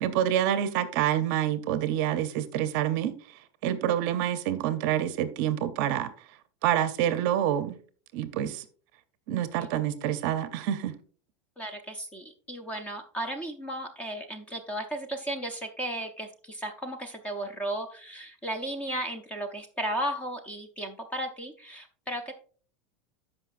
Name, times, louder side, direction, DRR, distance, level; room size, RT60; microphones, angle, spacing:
voice 1, 0.0-3.1 3.6-6.1 6.6-7.8 8.1-8.6 9.3-10.9, right 11 dB, 40° right, 12 dB, 0.6 m, -27 dB
voice 2, 11.6-22.3, right 1 dB, 10° left, 8 dB, 0.5 m, -35 dB
14.0 x 5.4 x 2.5 m, 0.42 s
supercardioid pair, 180°, 15 cm